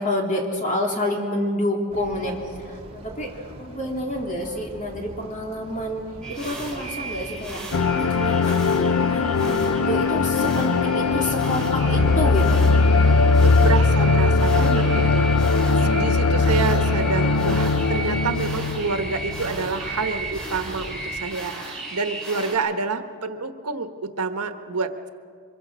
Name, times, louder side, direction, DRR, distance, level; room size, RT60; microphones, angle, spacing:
voice 1, 0.0-2.4 2.6-3.3 3.6-6.0 6.3-7.6 7.9-12.6 14.6-14.9, left 1 dB, 35° left, 1 dB, 3.3 m, -28 dB
sound 1, 1.9-21.2, equal, 25° right, 3.0 m, -39 dB
sound 2, 6.2-22.5, right 2 dB, 5° left, 4.5 m, -35 dB
sound 3, 7.7-19.6, left 3 dB, 70° left, 0.6 m, -20 dB
voice 2, 13.3-15.2 15.8-25.1, right 4 dB, 90° right, 8 dB, 1.4 m, -28 dB
24.5 x 23.0 x 6.3 m, 2.1 s
head